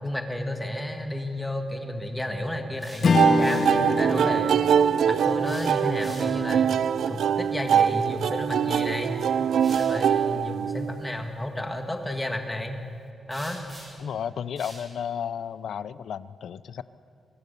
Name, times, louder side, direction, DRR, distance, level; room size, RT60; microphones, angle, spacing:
voice 1, 0.0-4.6 5.1-9.2 9.7-12.8 13.3-13.6, left 1 dB, 10° left, 4 dB, 1.8 m, -32 dB
sound 1, 2.7-3.7 5.3-6.5 8.6-8.7 9.5-9.9 13.3-14.1 14.6-14.8, right 1 dB, 25° right, 7.4 m, -45 dB
Strum, 3.0-7.6, left 4 dB, 45° left, 1.1 m, -28 dB
sound 2, 3.1-11.1, right 8 dB, 70° right, 0.5 m, -23 dB
voice 2, 10.3-10.7 14.0-16.8, left 8 dB, 70° left, 16 dB, 0.6 m, -33 dB
24.5 x 21.0 x 6.9 m, 2.7 s
wide cardioid pair, 175°, 0 cm